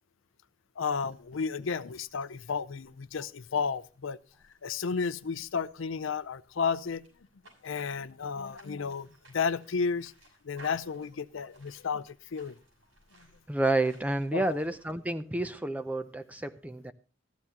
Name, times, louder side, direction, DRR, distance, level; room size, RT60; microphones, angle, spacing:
voice 1, 0.8-4.2 4.6-7.0 7.6-9.1 9.3-10.1 10.4-12.6 14.3-14.4, left 5 dB, 80° left, 0.5 m, -32 dB
sound 1, 0.9-14.9, right 2 dB, 85° right, 6.4 m, -61 dB
voice 2, 13.5-16.9, right 2 dB, 5° right, 0.5 m, -30 dB
14.5 x 12.0 x 2.8 m
head